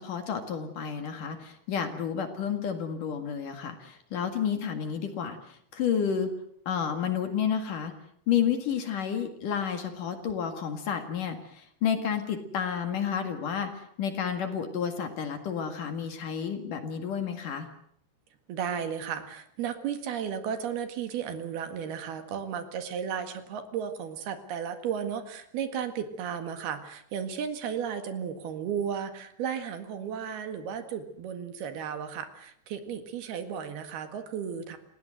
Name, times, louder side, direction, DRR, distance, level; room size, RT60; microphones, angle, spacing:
voice 1, 0.0-6.3 6.7-7.9 8.3-17.7, left 7 dB, 55° left, 7 dB, 3.3 m, -31 dB
voice 2, 18.5-34.8, right 8 dB, 70° right, 8 dB, 3.7 m, -34 dB
29.5 x 17.5 x 7.9 m, 0.68 s
omnidirectional pair, 4.8 m